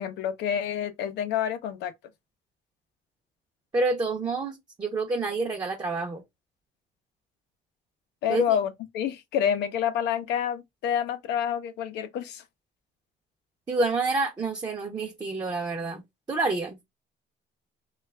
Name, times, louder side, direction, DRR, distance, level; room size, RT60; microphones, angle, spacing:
voice 1, 0.0-1.9 8.2-12.4, left 9 dB, 80° left, 0.6 m, -28 dB
voice 2, 3.7-6.2 8.3-8.6 13.7-16.0 16.3-16.8, right 3 dB, 20° right, 0.6 m, -28 dB
3.2 x 2.3 x 3.2 m
cardioid pair, 110°, 17 cm